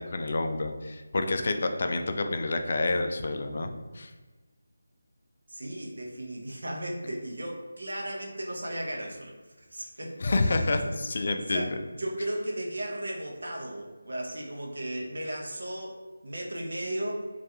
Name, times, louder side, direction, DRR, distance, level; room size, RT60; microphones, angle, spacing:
voice 1, 0.0-4.1 10.2-11.8, left 2 dB, 50° left, 6 dB, 0.3 m, -28 dB
voice 2, 5.5-10.9 11.5-17.2, right 1 dB, 70° right, -1 dB, 0.6 m, -36 dB
2.3 x 2.2 x 2.8 m, 1.3 s
figure-of-eight pair, 165°, 0 cm